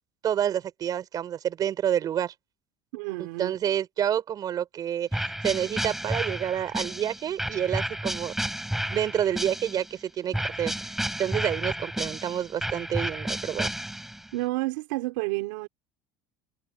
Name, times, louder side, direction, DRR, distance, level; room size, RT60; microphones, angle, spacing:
voice 1, 0.2-2.3 3.4-8.3 8.9-13.7, right 10 dB, 40° right, 5.6 m, -28 dB
voice 2, 2.9-3.6 14.3-15.7, right 21 dB, 85° right, 2.9 m, -30 dB
sound 1, 5.1-9.9 10.3-14.3, right 1 dB, 5° right, 6.4 m, -32 dB
supercardioid pair, 130°, 10 cm